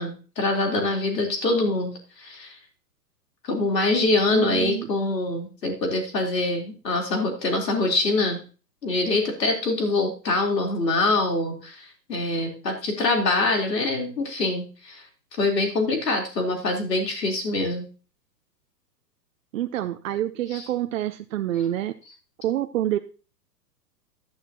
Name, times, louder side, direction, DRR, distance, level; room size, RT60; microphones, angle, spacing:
voice 1, 0.0-2.6 3.4-8.4 8.8-15.0 15.3-17.9 20.5-20.6, left 2 dB, 75° left, 1 dB, 4.0 m, -24 dB
voice 2, 4.3-4.9 19.5-21.9 22.4-23.0, right 12 dB, 55° right, 8 dB, 0.8 m, -27 dB
11.5 x 10.0 x 3.0 m, 0.35 s
figure-of-eight pair, 110°, 50 cm